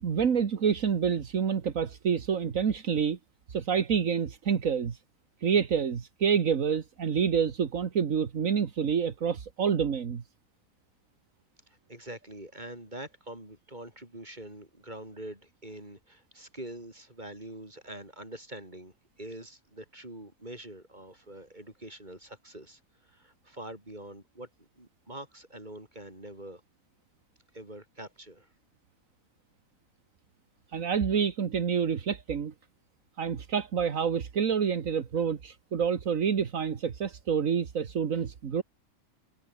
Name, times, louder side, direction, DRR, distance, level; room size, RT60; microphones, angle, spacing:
voice 1, 0.0-3.2 3.5-5.0 5.4-10.2 30.7-32.5 33.2-38.6, right 7 dB, 75° right, 1.8 m, -28 dB
voice 2, 11.7-26.6 27.5-28.5, right 1 dB, 35° right, 6.9 m, -45 dB
omnidirectional pair, 1.4 m